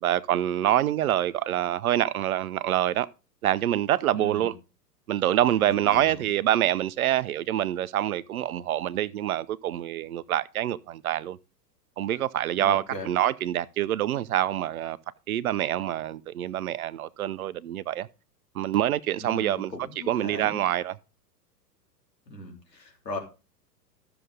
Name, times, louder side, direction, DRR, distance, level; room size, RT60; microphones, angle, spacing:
voice 1, 0.0-3.1 3.4-4.5 5.1-11.4 12.0-15.0 15.3-18.1 18.5-19.7 20.1-20.9, right 12 dB, 60° right, 0.7 m, -26 dB
voice 2, 4.2-4.5 5.6-6.3 12.6-13.1 19.2-20.6 22.3-23.2, left 1 dB, 80° left, 3.3 m, -38 dB
13.0 x 6.9 x 3.8 m
figure-of-eight pair, 100°, 49 cm